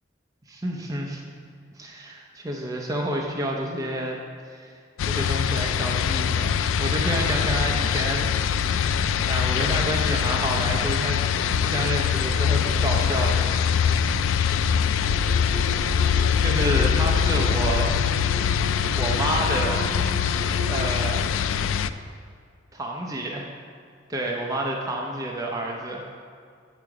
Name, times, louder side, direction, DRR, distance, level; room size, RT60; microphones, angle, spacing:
voice 1, 0.5-1.2 1.8-4.2 4.5-4.8 5.0-8.6 9.3-13.5 16.4-18.0 18.9-19.9 20.7-21.3 22.7-23.5 24.1-26.2, right 1 dB, 20° right, -1 dB, 0.6 m, -29 dB
sound 1, 5.0-21.9, left 7 dB, 90° left, 0.3 m, -23 dB
sound 2, 12.3-17.1, right 3 dB, 80° right, 1.3 m, -48 dB
sound 3, 15.0-20.8, right 2 dB, 55° right, 1.6 m, -37 dB
9.5 x 5.0 x 4.7 m, 2.3 s
head